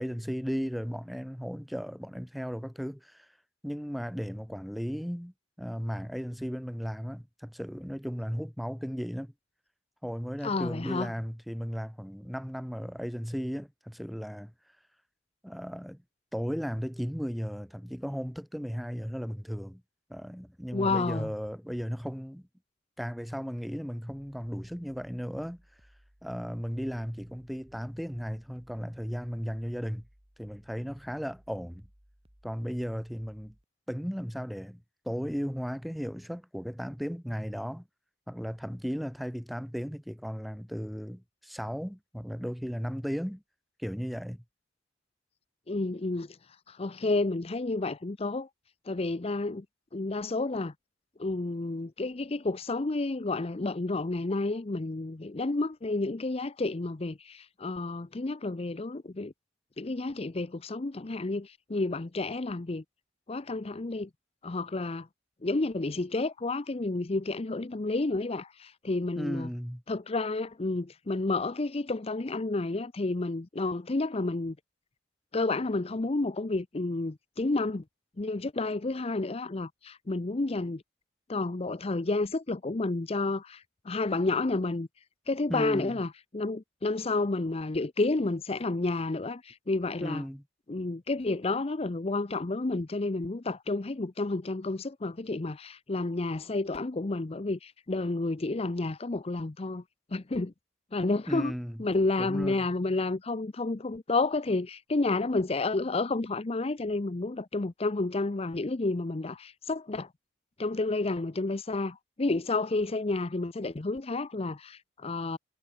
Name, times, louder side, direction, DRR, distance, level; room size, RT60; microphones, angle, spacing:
voice 1, 0.0-3.3 3.6-9.3 10.0-14.5 15.4-16.0 16.3-19.8 20.1-22.5 23.0-25.6 26.2-30.0 30.4-31.9 32.4-33.5 33.9-37.9 38.3-43.4 43.8-44.4 69.2-69.8 85.5-86.0 90.0-90.4 101.3-101.8 102.2-102.7, equal, ahead, 0.9 m, -35 dB
voice 2, 10.4-11.1 20.7-21.3 45.7-46.4 46.7-48.5 48.9-49.7 49.9-50.7 51.2-59.3 59.8-62.8 63.3-64.1 64.4-65.1 65.4-69.5 69.9-74.6 75.3-77.8 78.2-80.8 81.3-84.9 85.3-90.2 90.7-99.8 100.1-100.5 100.9-101.5 101.8-110.1 110.6-115.4, left 2 dB, 30° left, 0.6 m, -30 dB
sound 1, 24.1-33.7, equal, 30° right, 4.0 m, -62 dB
head